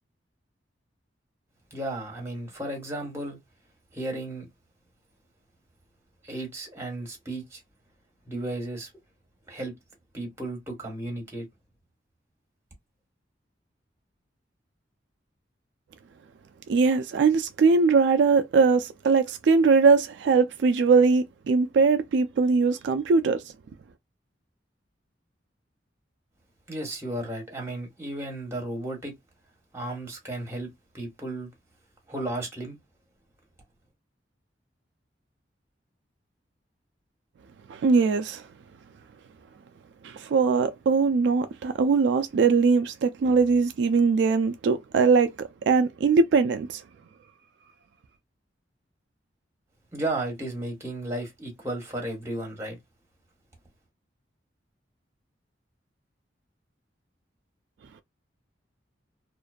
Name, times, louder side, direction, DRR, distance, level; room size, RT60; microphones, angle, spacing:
voice 1, 1.7-3.4 3.9-4.5 6.2-7.6 8.2-8.9 9.5-9.7 10.1-11.5 26.7-29.1 29.7-30.7 30.9-31.5 32.1-32.8 49.9-52.8, right 1 dB, 15° right, 1.2 m, -34 dB
voice 2, 16.7-23.4 37.7-38.4 40.0-46.8, right 4 dB, 70° right, 0.3 m, -21 dB
2.5 x 2.2 x 2.3 m
head